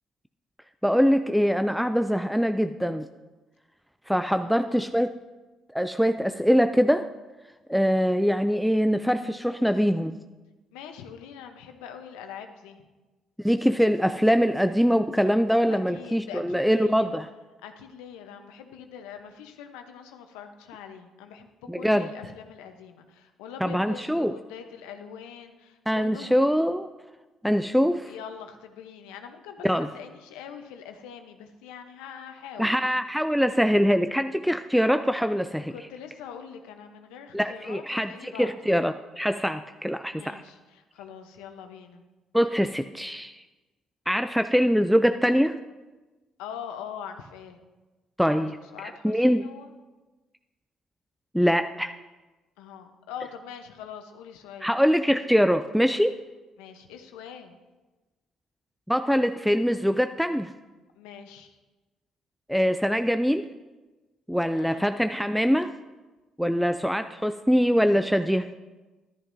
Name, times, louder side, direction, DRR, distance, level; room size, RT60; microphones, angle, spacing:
voice 1, 0.8-3.1 4.1-5.1 5.7-7.1 7.7-10.2 13.4-17.2 21.7-22.1 23.6-24.4 25.9-26.9 27.4-28.1 29.6-29.9 32.6-35.7 37.3-40.4 42.3-43.4 44.1-45.6 48.2-48.6 48.8-49.4 51.3-51.9 54.6-56.1 58.9-60.5 62.5-63.5 64.3-65.7 66.4-68.5, equal, ahead, 9 dB, 0.4 m, -23 dB
voice 2, 4.4-5.0 10.7-12.8 15.7-17.1 17.6-26.4 28.1-32.9 35.7-38.5 40.1-42.0 46.4-47.6 48.3-49.7 52.6-54.8 56.6-57.6 61.0-61.5 64.5-64.9, left 8 dB, 90° left, 6 dB, 0.9 m, -43 dB
12.5 x 11.0 x 2.7 m, 1.2 s
supercardioid pair, 65°, 0 cm